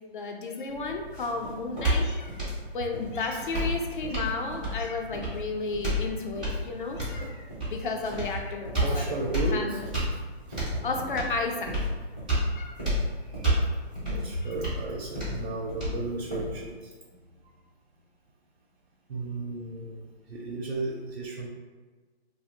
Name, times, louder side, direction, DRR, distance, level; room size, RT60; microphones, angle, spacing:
voice 1, 0.1-7.3 7.7-9.1 9.5-9.7 10.8-11.9 12.5-12.8 14.4-14.5, left 3 dB, 50° left, 3 dB, 0.5 m, -33 dB
sound 1, 0.7-16.7, equal, 10° right, 0.4 m, -31 dB
voice 2, 3.3-3.7 6.5-6.6 7.1-7.3 8.0-8.1 8.8-9.8 10.1-10.2 10.5-11.1 13.0-13.8 14.1-17.5 19.1-21.5, right 2 dB, 70° right, -3 dB, 0.6 m, -36 dB
2.6 x 2.0 x 3.5 m, 1.4 s
hypercardioid pair, 150°, 32 cm